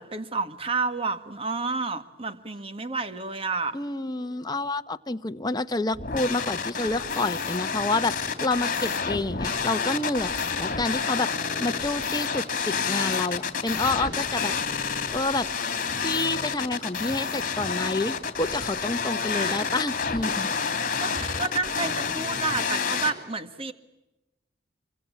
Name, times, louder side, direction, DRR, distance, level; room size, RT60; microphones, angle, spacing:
voice 1, 0.0-3.8 19.3-19.6 21.0-23.7, right 4 dB, 35° right, 10 dB, 1.9 m, -30 dB
voice 2, 3.7-11.3 11.6-14.5 15.1-15.5 16.0-20.5, left 2 dB, 25° left, 9 dB, 1.0 m, -28 dB
sound 1, 5.9-23.1, left 5 dB, 50° left, 2.9 m, -29 dB
25.5 x 25.0 x 8.6 m, 0.98 s
head